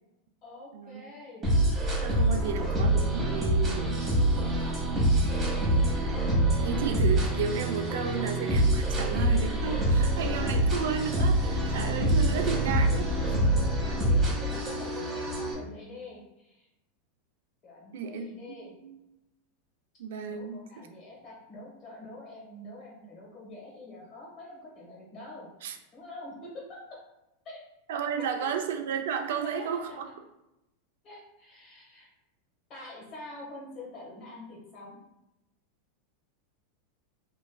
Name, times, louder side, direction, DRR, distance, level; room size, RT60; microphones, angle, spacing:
voice 1, 0.4-1.4 2.3-2.7 4.4-5.5 12.3-12.7 13.6-16.6 17.6-18.7 20.3-25.5 25.9-26.8 27.4-27.6 28.2-28.3 31.0-32.1 32.7-35.0, left 2 dB, 40° left, -4 dB, 1.3 m, -46 dB
sound 1, 1.4-15.5, right 1 dB, 20° right, 1.0 m, -26 dB
voice 2, 2.0-4.0 6.6-13.0 17.9-19.0 20.0-20.9 25.6-25.8 27.9-30.0, right 7 dB, 80° right, 5 dB, 0.4 m, -33 dB
3.0 x 2.5 x 2.3 m, 0.92 s
supercardioid pair, 130°, 0 cm